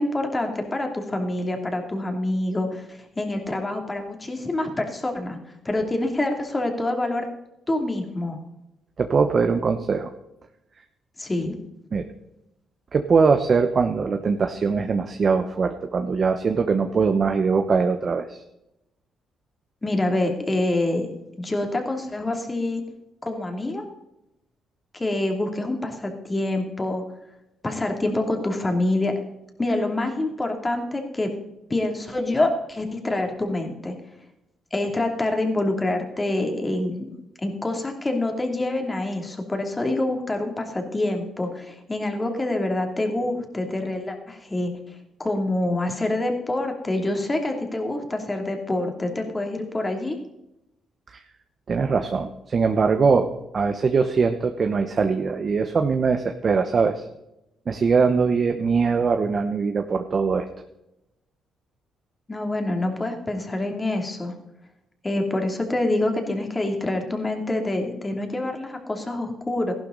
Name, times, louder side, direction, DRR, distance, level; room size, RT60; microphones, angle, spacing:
voice 1, 0.0-5.4 5.6-7.2 7.7-8.4 11.2-11.6 19.8-21.1 21.4-22.8 23.2-23.8 24.9-27.0 27.6-29.1 29.6-31.3 31.7-33.9 34.7-37.1 37.4-44.7 45.2-50.2 62.3-64.3 65.0-69.7, left 2 dB, 20° left, 3 dB, 2.8 m, -26 dB
voice 2, 9.0-10.1 11.9-12.0 12.9-18.4 51.1-51.2 51.7-53.3 53.5-57.0 57.7-60.5, right 5 dB, 45° right, 6 dB, 1.0 m, -22 dB
15.0 x 11.5 x 4.0 m, 0.89 s
cardioid pair, 90°, 0 cm